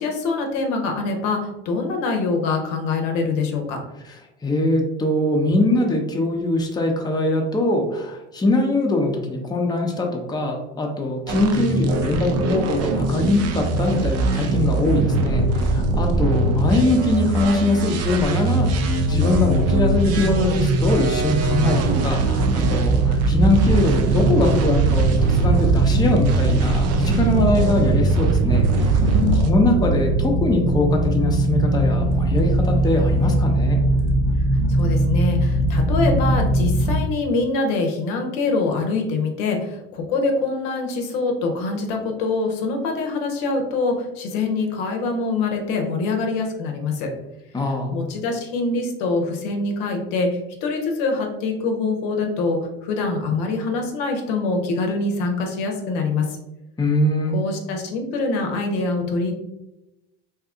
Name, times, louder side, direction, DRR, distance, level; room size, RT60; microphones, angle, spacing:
voice 1, 0.0-3.8 29.1-29.6 34.7-47.1 47.9-56.4 57.3-59.3, left 3 dB, 70° left, 3 dB, 0.7 m, -24 dB
voice 2, 4.4-33.8 47.5-47.9 56.8-57.3, left 2 dB, 10° left, 1 dB, 0.6 m, -22 dB
sound 1, 11.3-29.5, right 3 dB, 50° right, 0.5 m, -22 dB
sound 2, 18.5-37.0, right 2 dB, 70° right, 0.8 m, -21 dB
2.8 x 2.3 x 3.6 m, 0.94 s
hypercardioid pair, 75°, 33 cm